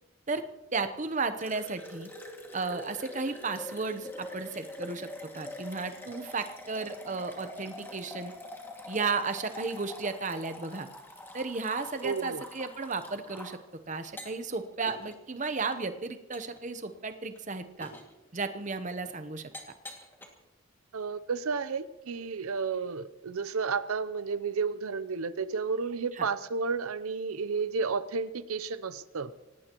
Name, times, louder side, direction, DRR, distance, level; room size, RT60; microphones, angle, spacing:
voice 1, 0.7-2.1 2.5-5.1 5.3-8.3 8.9-10.9 11.3-13.6 13.9-17.9 18.3-19.5 26.1-26.3, right 4 dB, 35° right, 9 dB, 0.8 m, -34 dB
sound 1, 1.4-13.6 14.0-14.6 14.9-15.2 15.7-15.8 16.3-16.6 17.1-17.4 17.8-18.1 18.9-19.0 19.5-20.3, left 1 dB, 10° left, 2.1 m, -44 dB
voice 2, 12.0-12.4 20.9-29.3, right 5 dB, 80° right, 13 dB, 0.6 m, -32 dB
25.5 x 18.0 x 3.0 m, 1.0 s
head